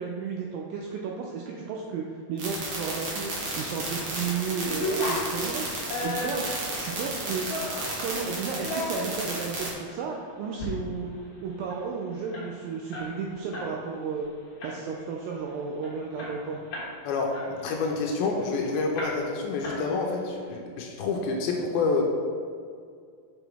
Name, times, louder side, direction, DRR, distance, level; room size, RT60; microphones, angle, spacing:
voice 1, 0.0-3.3 3.6-5.7 6.0-6.4 6.8-7.5 8.0-11.1 11.4-14.3 14.6-16.6, right 5 dB, 85° right, -1 dB, 2.0 m, -33 dB
sound 1, 2.4-9.7, right 3 dB, 60° right, 1.7 m, -33 dB
sound 2, 3.7-4.0 4.4-8.0 8.5-9.4 9.9-10.0 10.4-10.7 11.0-11.1 11.4-13.7 14.0-14.2 14.6-15.0 15.5-15.6 15.8-17.0 17.3-18.5 18.9-19.4 19.6-20.3, left 1 dB, 55° left, 1.4 m, -35 dB
voice 2, 17.0-22.0, left 4 dB, 80° left, 1 dB, 2.3 m, -28 dB
6.1 x 5.9 x 3.5 m, 2.2 s
omnidirectional pair, 4.6 m